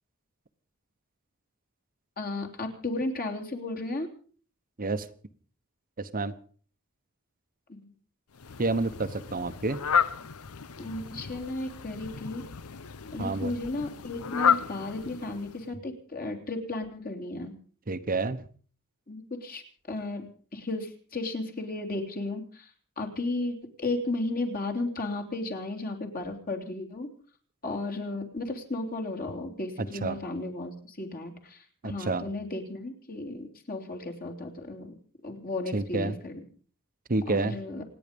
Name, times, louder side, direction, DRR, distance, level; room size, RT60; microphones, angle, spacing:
voice 1, 2.2-4.1 7.7-7.9 10.8-12.4 13.1-17.5 19.1-22.7 23.0-27.1 27.6-35.0 35.2-36.4 37.3-37.8, left 2 dB, 40° left, 4 dB, 3.3 m, -34 dB
voice 2, 6.0-6.3 8.6-9.8 13.2-13.5 17.9-18.4 30.0-30.2 31.8-32.2 35.7-36.1 37.1-37.5, right 3 dB, 40° right, 9 dB, 1.0 m, -29 dB
Fowl, 8.3-15.7, left 7 dB, 85° left, 0.8 m, -32 dB
28.0 x 9.9 x 5.3 m, 0.43 s
head